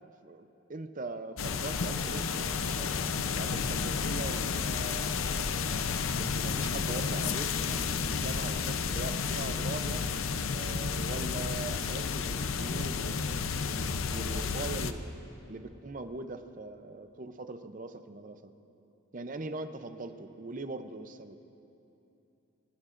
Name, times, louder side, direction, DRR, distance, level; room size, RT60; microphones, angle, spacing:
voice 1, 0.0-3.0 3.3-5.6 6.2-10.2 10.5-15.1 15.5-18.5 19.1-21.4, right 2 dB, 40° right, 9 dB, 0.6 m, -41 dB
sound 1, 1.4-14.9, left 5 dB, 80° left, 0.6 m, -31 dB
24.0 x 18.5 x 2.6 m, 2.8 s
head